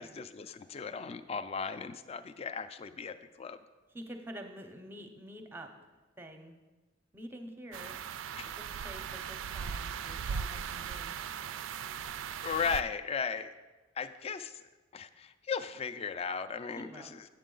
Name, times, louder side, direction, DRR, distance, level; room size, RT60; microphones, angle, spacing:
voice 1, 0.0-3.6 8.4-8.5 12.4-13.5 14.0-14.6 14.9-17.2, left 6 dB, 30° left, 11 dB, 0.3 m, -36 dB
voice 2, 3.9-5.7 6.2-6.6 7.1-8.0 8.6-11.1 16.7-17.1, equal, 10° right, 5 dB, 0.6 m, -47 dB
sound 1, 7.7-12.8, right 7 dB, 75° right, 0.3 m, -38 dB
7.9 x 7.4 x 3.8 m, 1.2 s
head